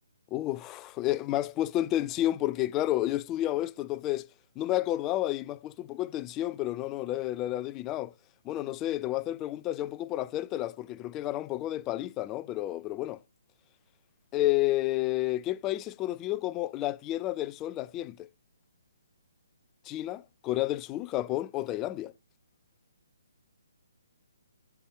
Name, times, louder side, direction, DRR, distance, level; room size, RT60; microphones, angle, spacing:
voice 1, 0.3-4.3 4.6-8.1 8.4-13.2 14.3-18.3 19.9-22.1, left 15 dB, 20° left, 0.3 m, -31 dB
6.7 x 5.8 x 3.6 m
figure-of-eight pair, 140°, 0 cm